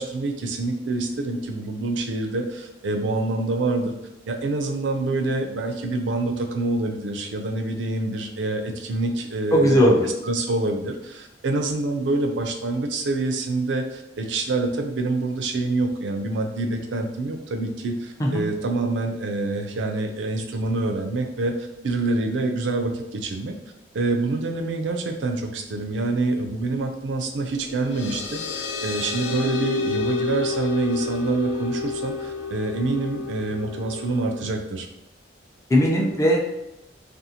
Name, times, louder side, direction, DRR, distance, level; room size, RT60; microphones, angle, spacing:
voice 1, 0.0-3.9 4.3-9.9 10.3-21.5 21.8-23.5 23.9-34.9, right 2 dB, 85° right, 4 dB, 0.4 m, -26 dB
voice 2, 9.5-10.0 18.2-18.5 35.7-36.4, equal, 15° left, 0 dB, 0.4 m, -18 dB
sound 1, 27.4-34.5, left 4 dB, 85° left, 0.4 m, -30 dB
2.5 x 2.4 x 2.7 m, 0.89 s
head